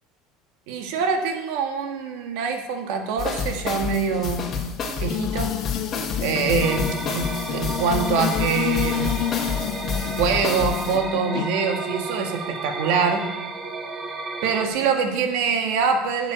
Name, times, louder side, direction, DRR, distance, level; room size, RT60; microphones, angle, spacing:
voice 1, 0.7-4.5 5.0-5.5 6.2-9.2 10.2-13.2 14.4-16.3, right 5 dB, 70° right, 4 dB, 2.0 m, -24 dB
sound 1, 3.2-11.0, left 5 dB, 35° left, 2.0 m, -29 dB
sound 2, 5.0-11.5, left 14 dB, 55° left, 0.4 m, -29 dB
sound 3, 6.6-14.7, right 3 dB, 25° right, 1.3 m, -33 dB
11.5 x 7.4 x 8.3 m, 1.0 s
cardioid pair, 140°, 0 cm